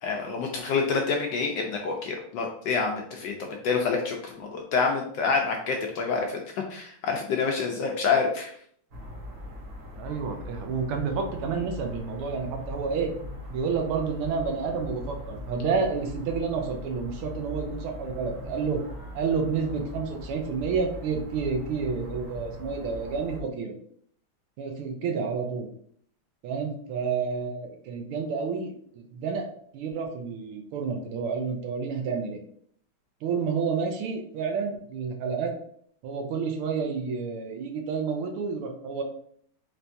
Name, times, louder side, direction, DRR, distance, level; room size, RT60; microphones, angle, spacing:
voice 1, 0.0-6.4 6.7-8.5, left 5 dB, 75° left, 1 dB, 1.1 m, -27 dB
sound 1, 8.9-23.4, left 1 dB, 60° right, 0.9 m, -40 dB
voice 2, 10.0-13.1 13.5-18.8 19.1-23.7 24.6-25.7 26.4-29.5 29.7-32.4 33.2-35.5 36.0-39.0, right 5 dB, 85° right, 3 dB, 1.6 m, -30 dB
4.3 x 3.4 x 2.6 m, 0.62 s
omnidirectional pair, 2.3 m